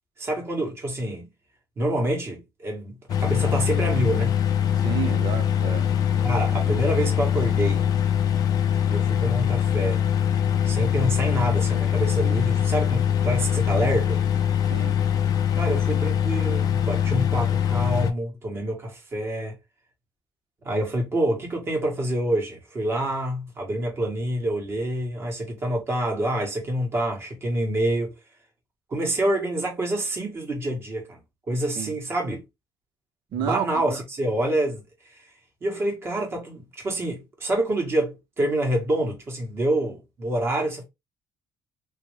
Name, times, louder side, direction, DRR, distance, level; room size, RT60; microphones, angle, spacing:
voice 1, 0.2-1.3 1.8-4.4 6.2-7.9 8.9-10.0 10.6-14.2 15.6-19.6 20.6-28.1 28.9-31.2 31.5-32.5 33.3-34.8 35.1-35.2 35.6-40.8, right 1 dB, 30° right, 1.5 m, -27 dB
sound 1, 3.1-18.1, left 9 dB, 55° left, 0.6 m, -23 dB
voice 2, 4.8-6.3 14.7-15.0 31.8-31.9 33.3-33.7, right 9 dB, 75° right, 0.8 m, -31 dB
3.1 x 2.9 x 3.1 m
cardioid pair, 145°, 8 cm